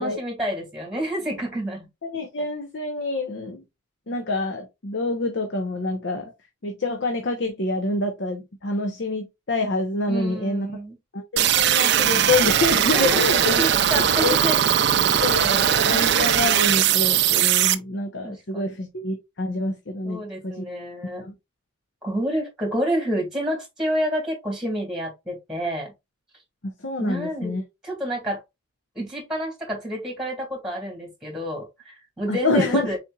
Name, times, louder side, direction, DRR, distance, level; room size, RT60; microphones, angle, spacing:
voice 1, 0.0-1.9 10.1-11.0 12.9-14.6 16.1-16.3 18.2-18.8 20.0-21.2 22.0-25.9 27.0-27.6 27.8-28.4 29.0-33.0, equal, 5° right, 1.9 m, -29 dB
voice 2, 2.0-3.6 4.1-6.3 6.6-10.7 11.1-13.6 14.0-14.4 15.2-20.6 21.2-21.3 26.8-27.6 32.3-32.9, left 2 dB, 55° left, 0.8 m, -27 dB
sound 1, 11.4-17.7, right 10 dB, 55° right, 0.4 m, -19 dB
4.3 x 4.1 x 2.3 m
head